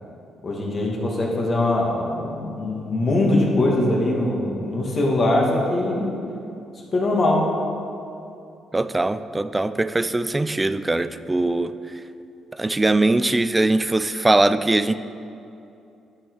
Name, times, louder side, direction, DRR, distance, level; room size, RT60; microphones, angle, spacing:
voice 1, 0.4-6.2 6.9-7.5, left 1 dB, 40° left, -2 dB, 1.7 m, -22 dB
voice 2, 8.7-11.7 12.5-14.9, right 2 dB, 15° right, 13 dB, 0.3 m, -21 dB
11.0 x 4.6 x 4.6 m, 2.7 s
cardioid pair, 90°, 0 cm